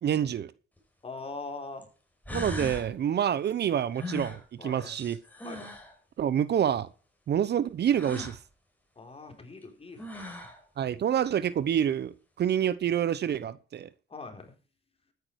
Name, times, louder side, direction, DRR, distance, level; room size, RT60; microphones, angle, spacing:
voice 1, 0.0-0.5 2.3-5.2 6.2-6.9 7.3-8.4 10.8-13.9, right 9 dB, 55° right, 0.9 m, -27 dB
sound 1, 0.8-0.9 1.8-1.9 2.3-2.9 4.0-5.9 8.0-8.4 9.6-9.7 10.0-10.6, left 2 dB, 10° left, 5.4 m, -38 dB
voice 2, 1.0-1.9 4.6-4.9 5.4-5.7 9.0-10.5 14.1-14.5, left 3 dB, 30° left, 4.1 m, -42 dB
14.0 x 9.6 x 4.7 m
cardioid pair, 90°, 20 cm